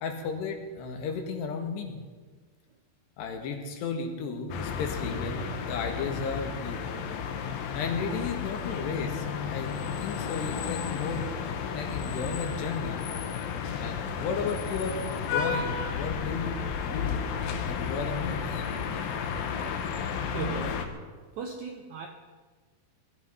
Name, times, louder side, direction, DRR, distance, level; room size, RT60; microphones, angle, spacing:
voice 1, 0.0-2.0 3.2-6.8 7.7-11.3 11.7-13.1 13.8-17.3 17.6-18.6, left 5 dB, 85° left, 4 dB, 3.9 m, -34 dB
sound 1, 4.5-20.9, left 6 dB, 70° left, 2.7 m, -33 dB
voice 2, 20.3-20.9 21.4-22.1, right 6 dB, 75° right, 3 dB, 1.7 m, -37 dB
20.0 x 13.0 x 5.7 m, 1.4 s
omnidirectional pair, 4.7 m